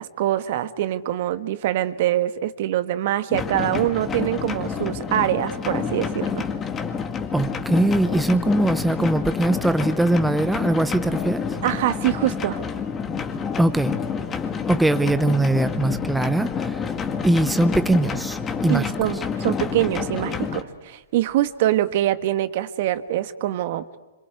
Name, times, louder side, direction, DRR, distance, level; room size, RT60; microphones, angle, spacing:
voice 1, 0.0-6.3 11.6-12.6 18.7-23.8, right 13 dB, 55° right, 1.5 m, -24 dB
sound 1, 3.3-20.6, left 6 dB, 20° left, 2.1 m, -28 dB
voice 2, 7.3-11.4 13.6-13.9 14.7-16.9 17.2-18.9, right 1 dB, 5° right, 0.8 m, -21 dB
27.0 x 26.0 x 8.1 m
hypercardioid pair, 130°, 0 cm